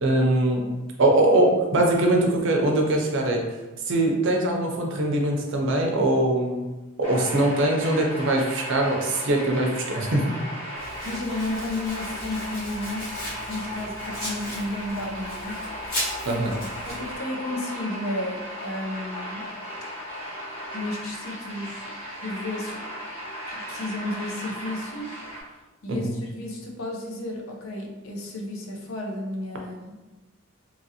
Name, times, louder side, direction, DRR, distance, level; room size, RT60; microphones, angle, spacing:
voice 1, 0.0-0.7 1.0-3.4 3.8-6.7 7.0-10.3 16.3-16.6 25.9-26.2, right 1 dB, 65° right, 1 dB, 0.5 m, -22 dB
sound 1, 7.0-25.4, equal, 30° left, 1.2 m, -36 dB
voice 2, 10.7-15.7 16.8-19.5 20.7-21.8 22.2-22.8 23.5-25.2 25.8-30.0, left 1 dB, 80° left, 1 dB, 0.6 m, -33 dB
Domestic sounds home sounds, 10.8-17.2, equal, 55° left, 1.4 m, -37 dB
2.9 x 2.5 x 2.8 m, 1.1 s
head